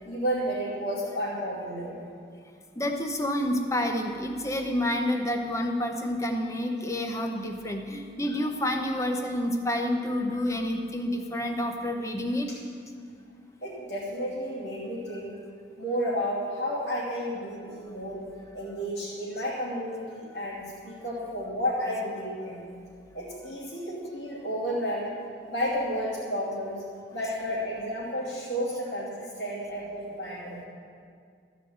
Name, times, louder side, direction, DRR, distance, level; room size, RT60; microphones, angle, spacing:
voice 1, 0.0-2.0 13.6-15.4 15.8-18.2 18.5-22.6 23.1-25.1 25.5-26.8 27.1-30.6, equal, 65° left, -8 dB, 2.8 m, -32 dB
voice 2, 2.8-12.5, left 1 dB, 15° left, 4 dB, 0.7 m, -29 dB
13.5 x 5.1 x 7.9 m, 2.2 s
head